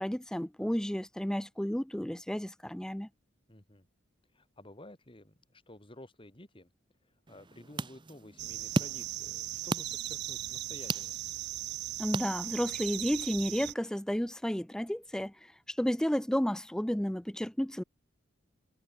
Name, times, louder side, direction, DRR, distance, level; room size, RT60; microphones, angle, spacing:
voice 1, 0.0-3.1 12.0-15.3 15.7-17.8, equal, 5° left, 0.4 m, -32 dB
voice 2, 3.5-3.9 4.3-6.7 7.3-11.2, left 1 dB, 25° left, 2.2 m, -52 dB
sound 1, 7.3-12.9, right 2 dB, 25° right, 0.8 m, -38 dB
sound 2, 8.4-13.7, right 15 dB, 55° right, 0.7 m, -38 dB
head